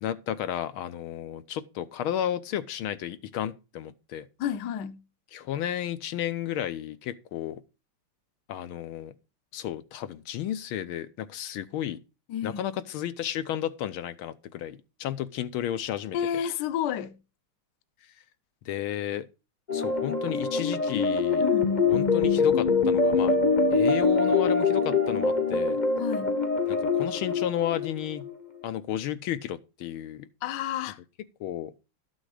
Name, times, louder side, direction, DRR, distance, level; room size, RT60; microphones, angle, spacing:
voice 1, 0.0-4.3 5.3-7.6 8.5-9.1 9.5-12.0 12.4-16.2 18.6-19.3 19.7-21.4 21.9-23.3 23.7-25.8 26.7-28.2 28.6-30.3 31.4-31.7, left 11 dB, 75° left, 1.5 m, -32 dB
voice 2, 4.4-5.0 12.3-12.6 16.1-17.1 21.4-21.8 26.0-26.3 30.4-31.0, left 9 dB, 60° left, 1.3 m, -30 dB
sound 1, 19.7-28.3, left 4 dB, 30° left, 0.8 m, -24 dB
12.5 x 6.4 x 4.9 m
omnidirectional pair, 2.4 m